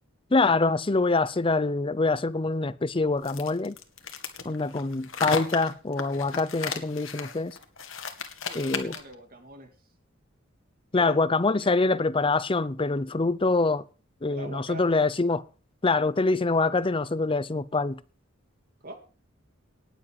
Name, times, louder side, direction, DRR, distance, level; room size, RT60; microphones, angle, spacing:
voice 1, 0.3-3.8 4.4-7.6 8.5-9.0 10.9-13.8 14.2-15.4 15.8-18.0, left 3 dB, 25° left, 0.6 m, -25 dB
sound 1, 3.2-9.1, left 5 dB, 80° left, 1.9 m, -34 dB
voice 2, 8.4-9.7 10.9-11.2 11.6-11.7 14.3-15.0 18.8-18.9, right 2 dB, 50° right, 2.6 m, -43 dB
19.0 x 7.5 x 4.8 m
head